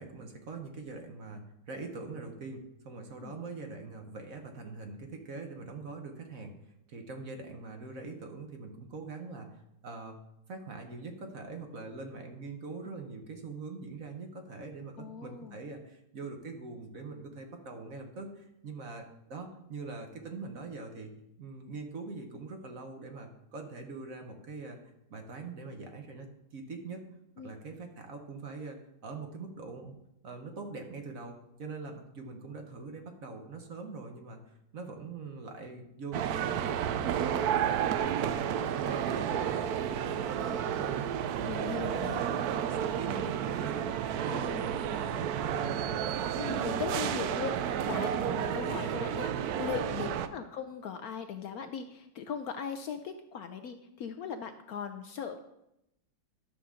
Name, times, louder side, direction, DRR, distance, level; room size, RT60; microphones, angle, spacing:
voice 1, 0.0-6.5 6.9-10.2 10.5-21.1 21.4-24.8 25.1-27.0 27.4-30.0 30.2-36.2 36.5-39.6 40.0-43.9 44.2-46.0 49.9-50.0, right 3 dB, 50° right, 4 dB, 1.3 m, -43 dB
voice 2, 15.0-15.6 27.4-27.5 41.4-42.3 44.2-44.7 46.4-55.4, left 7 dB, 75° left, 8 dB, 0.8 m, -39 dB
sound 1, 36.1-50.3, right 9 dB, 75° right, 0.9 m, -31 dB
11.5 x 6.9 x 3.7 m, 0.85 s
omnidirectional pair, 2.0 m